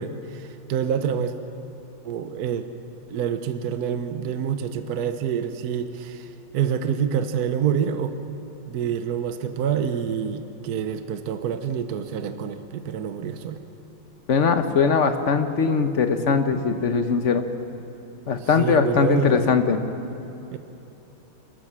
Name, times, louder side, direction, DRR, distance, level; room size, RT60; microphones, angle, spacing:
voice 1, 0.0-1.3 2.0-2.6 3.1-8.2 8.7-13.6 18.4-19.4 20.5-20.6, right 8 dB, 55° right, 9 dB, 1.2 m, -27 dB
voice 2, 14.3-17.4 18.3-19.8, left 5 dB, 45° left, 7 dB, 1.0 m, -20 dB
28.0 x 12.5 x 7.6 m, 3.0 s
omnidirectional pair, 2.3 m